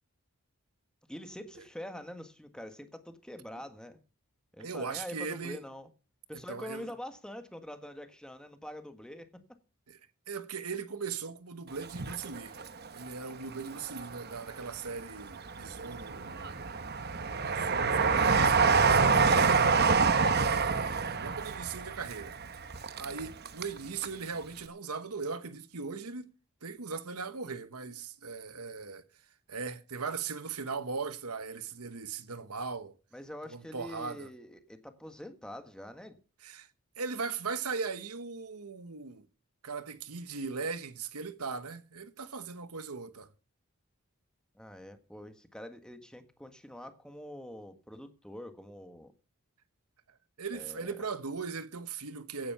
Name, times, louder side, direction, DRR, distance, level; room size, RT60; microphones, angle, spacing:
voice 1, 1.1-4.0 4.5-5.9 6.3-9.4 33.1-36.2 44.5-49.1 50.5-51.0, equal, 5° left, 1.6 m, -45 dB
voice 2, 4.6-5.6 6.5-6.9 9.9-10.0 10.3-12.5 12.9-16.3 17.4-19.5 20.3-22.4 23.0-26.3 26.6-29.0 29.5-32.9 33.5-34.3 36.4-36.7 37.0-39.2 39.6-43.3 50.4-52.5, right 5 dB, 90° right, 1.3 m, -39 dB
Train, 11.8-13.1 13.5-14.5 15.0-23.8 24.0-24.1, right 5 dB, 45° right, 1.1 m, -27 dB
16.5 x 9.5 x 5.7 m
head